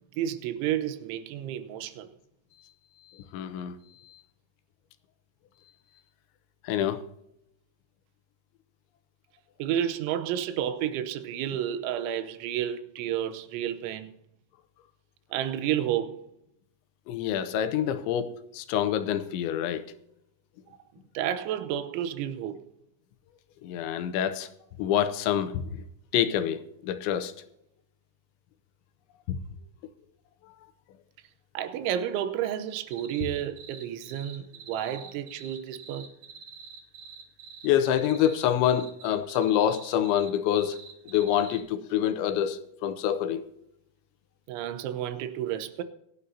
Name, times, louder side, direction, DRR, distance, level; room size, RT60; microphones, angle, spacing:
voice 1, 0.2-2.1 9.6-14.1 15.3-16.2 21.1-22.7 31.5-36.1 44.5-45.8, right 10 dB, 85° right, 3.2 m, -31 dB
voice 2, 3.1-3.8 4.0-4.2 6.6-7.0 17.1-19.8 23.6-24.5 24.8-25.8 26.1-27.3 29.3-29.4 37.6-43.4, left 10 dB, 80° left, 3.0 m, -27 dB
sound 1, 32.9-41.6, right 5 dB, 55° right, 3.1 m, -46 dB
26.0 x 9.9 x 2.7 m
omnidirectional pair, 5.4 m